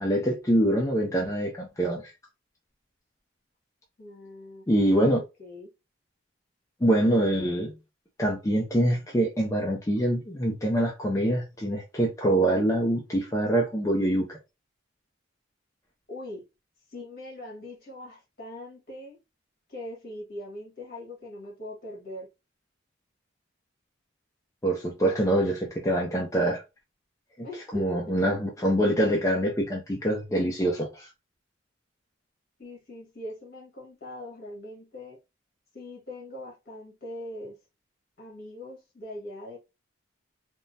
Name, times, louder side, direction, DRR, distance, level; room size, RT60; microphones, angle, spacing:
voice 1, 0.0-2.1 4.7-5.2 6.8-7.7 8.2-14.4 24.6-26.6 27.4-27.5 27.7-31.1, right 1 dB, 15° left, 0.4 m, -25 dB
voice 2, 4.0-5.7 16.1-16.4 16.9-19.2 19.7-22.3 27.4-28.3 32.6-35.2 35.7-37.6 38.2-39.6, left 1 dB, 50° left, 1.5 m, -41 dB
3.5 x 2.0 x 2.6 m
head